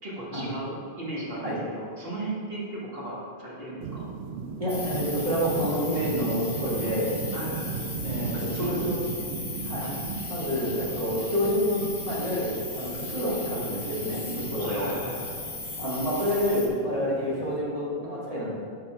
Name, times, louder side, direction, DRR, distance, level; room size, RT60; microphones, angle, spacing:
voice 1, 0.0-4.1 7.3-7.8 8.3-9.0 9.8-10.1 14.6-15.4, right 1 dB, 70° right, -5 dB, 1.8 m, -36 dB
sound 1, 3.8-17.6, right 5 dB, 90° right, 0.8 m, -37 dB
voice 2, 4.6-7.2 8.0-9.0 9.3-9.4 9.6-9.9 10.3-12.5 12.7-14.9 15.8-18.5, equal, 35° right, -7 dB, 2.2 m, -28 dB
sound 2, 4.7-16.7, left 3 dB, 45° left, 1.4 m, -37 dB
8.3 x 5.1 x 4.5 m, 2.2 s
omnidirectional pair, 1.0 m